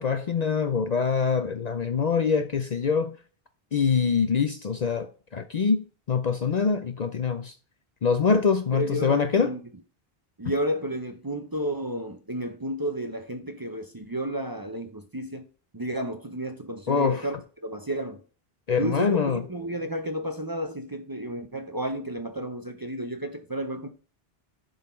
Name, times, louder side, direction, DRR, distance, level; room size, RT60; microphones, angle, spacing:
voice 1, 0.0-3.2 3.7-7.6 8.0-9.6 16.9-17.3 18.7-19.4, left 5 dB, 50° left, 0.6 m, -24 dB
voice 2, 8.7-9.6 10.4-15.5 15.7-17.3 17.6-18.2 18.8-23.9, right 1 dB, 25° right, 0.6 m, -32 dB
10.5 x 4.0 x 4.4 m
omnidirectional pair, 1.0 m